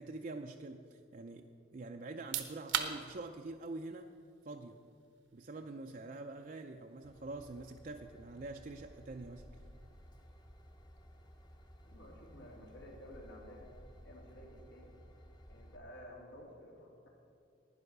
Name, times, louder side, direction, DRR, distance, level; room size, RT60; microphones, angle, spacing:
voice 1, 0.0-4.1 4.4-4.8 5.3-9.5, right 2 dB, 45° right, 4 dB, 0.4 m, -45 dB
sound 1, 2.1-14.7, right 8 dB, 80° right, 1.0 m, -47 dB
Train / Engine, 7.0-15.8, equal, 20° left, 0.8 m, -57 dB
voice 2, 11.8-13.7 14.0-14.9 15.5-17.2, equal, 85° left, -1 dB, 2.8 m, -53 dB
11.0 x 9.6 x 6.6 m, 2.3 s
head